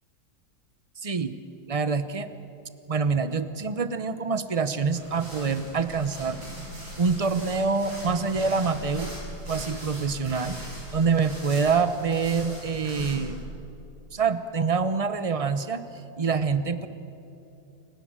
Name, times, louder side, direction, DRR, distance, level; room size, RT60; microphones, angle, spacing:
voice 1, 1.0-1.3 1.7-2.3 2.9-6.4 7.0-9.1 9.5-13.4 14.1-15.8 16.2-16.9, right 5 dB, 40° right, 11 dB, 0.5 m, -26 dB
sound 1, 4.9-13.4, equal, 85° right, 7.5 m, -39 dB
29.5 x 17.5 x 7.5 m, 2.8 s
omnidirectional pair, 2.0 m